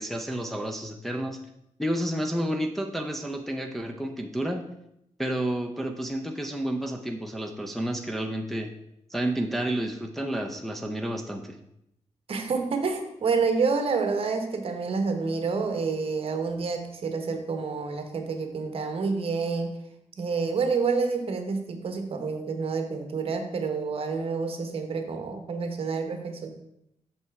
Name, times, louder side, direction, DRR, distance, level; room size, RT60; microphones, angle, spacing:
voice 1, 0.0-1.4 1.8-4.7 5.2-8.7 9.1-11.6, right 1 dB, ahead, 1 dB, 0.5 m, -30 dB
voice 2, 12.3-19.7 20.2-26.5, right 4 dB, 50° right, 6 dB, 1.0 m, -28 dB
6.7 x 5.5 x 4.6 m, 0.80 s
wide cardioid pair, 145°, 12 cm